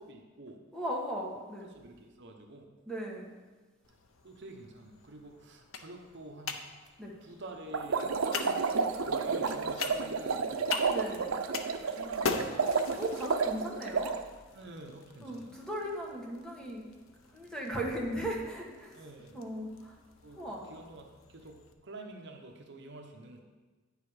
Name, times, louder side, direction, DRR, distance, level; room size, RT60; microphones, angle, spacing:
voice 1, 0.0-0.6 1.7-2.7 4.2-6.6 7.2-8.1 9.0-10.7 11.7-12.7 14.5-15.5 18.9-19.4 20.2-20.4 20.6-21.5 21.8-23.4, right 2 dB, 60° right, 3 dB, 0.9 m, -48 dB
voice 2, 0.7-1.7 2.9-3.3 7.0-7.1 8.4-8.6 10.9-11.3 13.0-14.2 15.2-16.8 17.3-19.0 19.3-20.0 20.4-20.7, equal, 5° left, -2 dB, 1.4 m, -37 dB
sound 1, 3.8-21.7, left 5 dB, 80° left, 0.7 m, -43 dB
sound 2, 7.7-14.2, right 5 dB, 80° right, 0.6 m, -31 dB
9.3 x 6.7 x 4.9 m, 1.3 s
head